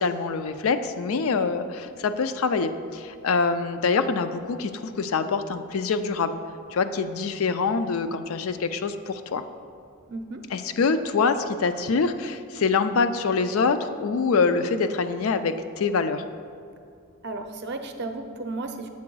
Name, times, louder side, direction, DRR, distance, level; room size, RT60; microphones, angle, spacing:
voice 1, 0.0-6.4 6.7-9.4 10.5-16.2, left 4 dB, 70° left, 10 dB, 0.4 m, -25 dB
voice 2, 10.1-10.4 17.2-18.9, right 2 dB, 50° right, 5 dB, 0.5 m, -34 dB
7.4 x 3.9 x 6.1 m, 2.4 s
head